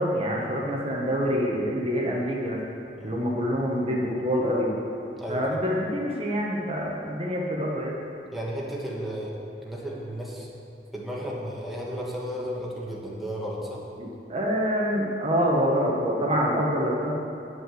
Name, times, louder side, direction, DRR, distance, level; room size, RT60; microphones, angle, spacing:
voice 1, 0.0-2.6 3.0-4.7 5.3-7.9 14.0-17.1, equal, 35° right, -2 dB, 1.2 m, -26 dB
voice 2, 8.3-10.5 10.9-13.8, equal, ahead, -5 dB, 1.4 m, -33 dB
9.5 x 5.8 x 7.7 m, 2.6 s
head